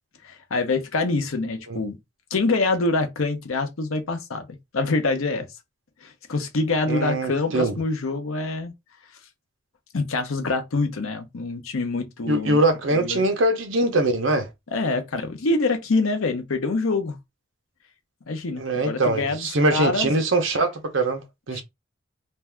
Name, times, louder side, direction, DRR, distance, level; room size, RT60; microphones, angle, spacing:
voice 1, 0.2-2.0 2.3-4.5 4.7-5.5 6.0-8.7 9.9-12.6 12.9-13.2 14.7-17.2 18.3-20.1 21.5-21.6, left 3 dB, 90° left, 0.7 m, -25 dB
voice 2, 6.9-7.7 12.3-14.5 18.6-21.6, right 2 dB, 70° right, 0.7 m, -22 dB
2.6 x 2.3 x 3.3 m
head